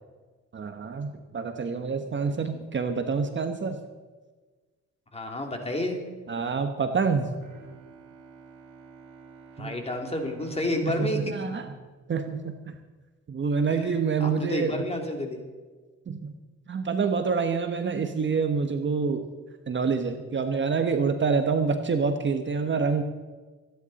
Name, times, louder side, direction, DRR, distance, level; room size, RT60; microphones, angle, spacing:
voice 1, 0.5-3.8 6.3-7.3 9.6-9.8 10.8-11.6 12.1-12.7 13.3-14.8 16.1-16.3 16.7-19.2 19.7-23.0, right 5 dB, 40° right, 6 dB, 1.2 m, -27 dB
voice 2, 5.1-6.0 9.6-11.2 13.7-15.4, left 1 dB, 20° left, 2 dB, 3.0 m, -30 dB
Bowed string instrument, 7.4-13.0, right 5 dB, 85° right, 2.7 m, -51 dB
24.5 x 10.5 x 4.2 m, 1.3 s
cardioid pair, 90°, 30 cm